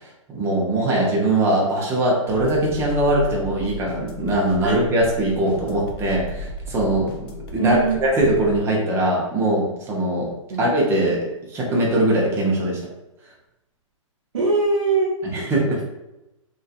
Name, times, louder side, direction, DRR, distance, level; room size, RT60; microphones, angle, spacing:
voice 1, 0.3-7.1 7.5-10.3 10.6-12.8 15.2-15.8, right 1 dB, 15° right, -3 dB, 0.6 m, -21 dB
sound 1, 2.3-8.6, right 1 dB, 45° left, 0.5 m, -35 dB
voice 2, 7.6-8.0 10.5-10.6 14.3-15.1, right 4 dB, 80° right, -8 dB, 0.8 m, -21 dB
2.7 x 2.3 x 2.4 m, 0.94 s
hypercardioid pair, 135°, 17 cm